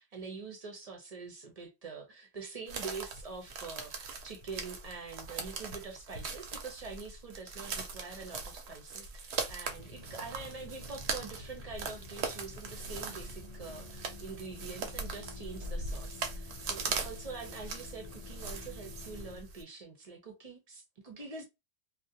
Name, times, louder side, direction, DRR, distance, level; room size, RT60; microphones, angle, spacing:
voice 1, 0.0-21.4, right 4 dB, 40° right, 0.6 m, -45 dB
sound 1, 2.7-19.6, right 4 dB, 75° right, 0.9 m, -40 dB
sound 2, 9.7-19.4, left 3 dB, 50° left, 0.5 m, -50 dB
2.3 x 2.1 x 2.7 m
omnidirectional pair, 1.1 m